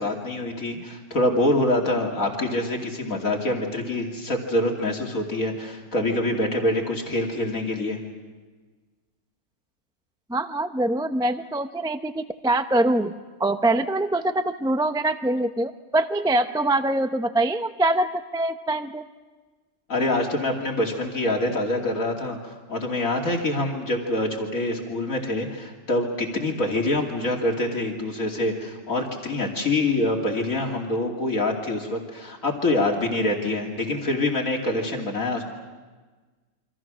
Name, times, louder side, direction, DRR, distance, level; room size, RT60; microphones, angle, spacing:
voice 1, 0.0-8.0 19.9-35.4, left 1 dB, 65° left, 0 dB, 3.2 m, -25 dB
voice 2, 10.3-13.1 13.4-19.0, right 1 dB, 5° right, 8 dB, 0.5 m, -24 dB
28.5 x 25.5 x 6.3 m, 1.3 s
omnidirectional pair, 1.5 m